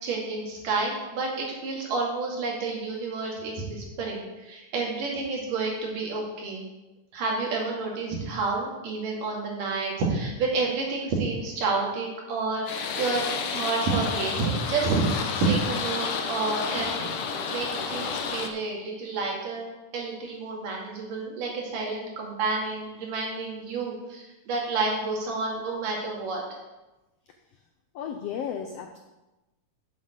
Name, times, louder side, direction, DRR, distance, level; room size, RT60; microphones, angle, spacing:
voice 1, 0.0-6.6 7.1-13.2 13.5-17.0 17.5-19.7 19.9-26.4, right 3 dB, 85° right, -2 dB, 4.0 m, -29 dB
sound 1, 12.7-18.5, left 5 dB, 65° left, 1.5 m, -31 dB
voice 2, 27.3-27.6 27.9-29.0, left 8 dB, 80° left, 6 dB, 1.4 m, -35 dB
8.1 x 7.3 x 7.9 m, 1.1 s
omnidirectional pair, 3.6 m